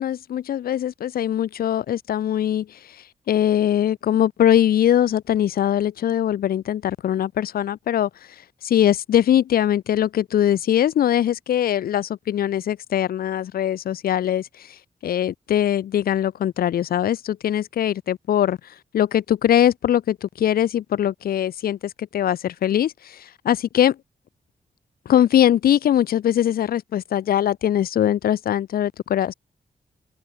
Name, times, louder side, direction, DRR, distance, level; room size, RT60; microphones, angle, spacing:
voice 1, 0.0-2.8 3.3-8.1 8.6-14.8 15.0-18.6 18.9-24.0 25.1-29.3, left 10 dB, 75° left, 0.5 m, -21 dB
open air
cardioid pair, 65°, 15 cm